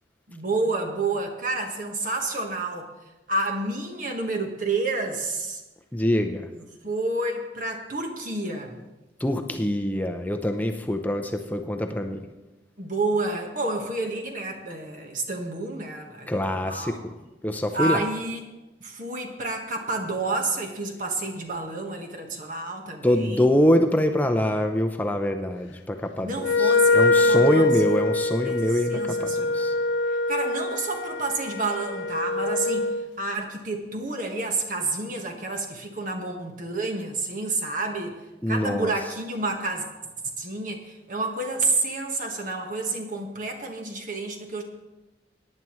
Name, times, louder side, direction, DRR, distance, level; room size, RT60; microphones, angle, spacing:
voice 1, 0.3-2.9 3.3-5.6 6.5-8.8 12.8-17.0 17.7-18.4 18.8-23.5 26.2-28.0 28.4-28.6 28.9-29.8 30.3-38.2 38.5-39.8 40.4-44.6, right 2 dB, 45° right, 2 dB, 1.4 m, -29 dB
voice 2, 5.9-6.5 9.2-12.2 16.3-17.1 17.4-18.0 23.0-29.7 38.4-38.9, equal, 10° left, 5 dB, 0.5 m, -24 dB
Wind instrument woodwind instrument, 26.4-33.1, left 2 dB, 85° left, 0.4 m, -24 dB
18.0 x 9.8 x 3.1 m, 1.1 s
head